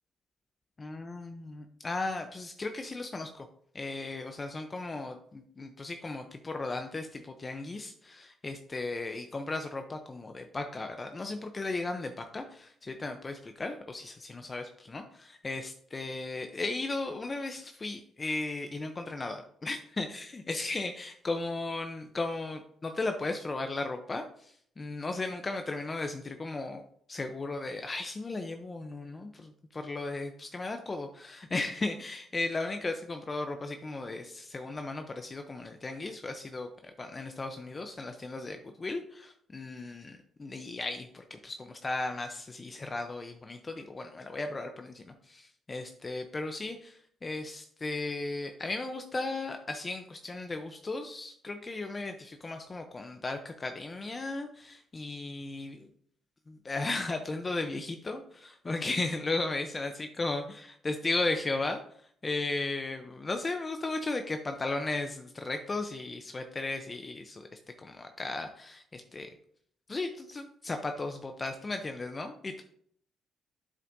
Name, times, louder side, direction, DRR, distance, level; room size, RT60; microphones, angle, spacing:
voice 1, 0.8-3.5 3.7-26.8 27.1-55.9 56.5-61.8 62.2-67.5 67.8-69.3 69.9-72.6, left 2 dB, 30° left, 5 dB, 0.6 m, -36 dB
8.1 x 7.4 x 2.7 m, 0.64 s
cardioid pair, 90°, 0 cm